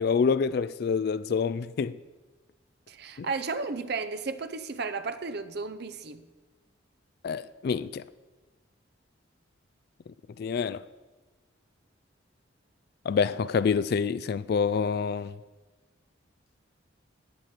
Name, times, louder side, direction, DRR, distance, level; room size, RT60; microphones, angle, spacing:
voice 1, 0.0-2.0 3.2-3.3 7.2-8.1 10.4-10.8 13.1-15.4, left 5 dB, 55° left, 0.3 m, -27 dB
voice 2, 2.9-6.2, right 4 dB, 55° right, 0.7 m, -33 dB
14.0 x 9.7 x 4.5 m
head